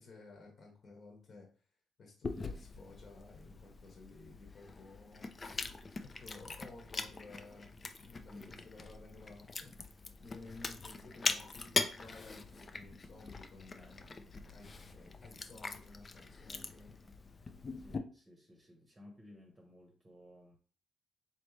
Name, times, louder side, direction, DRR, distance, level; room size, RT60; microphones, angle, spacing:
voice 1, 0.0-1.7 2.0-5.3 6.0-7.7 8.0-14.2 14.5-16.9, left 3 dB, 50° left, 0 dB, 1.2 m, -55 dB
Chewing mastication, 2.2-18.0, left 3 dB, 35° left, 0.5 m, -42 dB
voice 2, 8.3-8.7 11.0-11.5 13.8-14.0 17.8-20.6, left 1 dB, 20° right, 2 dB, 0.9 m, -57 dB
4.0 x 3.1 x 3.2 m, 0.41 s
cardioid pair, 90°, 0 cm